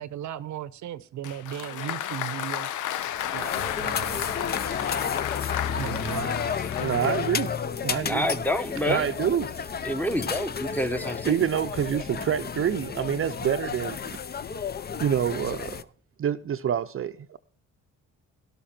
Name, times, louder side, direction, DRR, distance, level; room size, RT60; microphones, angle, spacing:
voice 1, 0.0-2.7 3.3-4.4 5.7-6.5, right 11 dB, 70° right, 0.8 m, -36 dB
Applause, 1.2-7.6, left 11 dB, 90° left, 0.8 m, -33 dB
sound 1, 2.9-15.8, left 6 dB, 30° left, 0.6 m, -32 dB
voice 2, 6.8-7.6 7.8-8.3 8.9-9.5 11.3-14.0 15.0-15.8 16.2-17.4, right 9 dB, 45° right, 0.6 m, -27 dB
voice 3, 8.0-9.1 9.8-11.5, equal, 5° left, 1.0 m, -28 dB
12.5 x 12.0 x 4.4 m
cardioid pair, 90°, 30 cm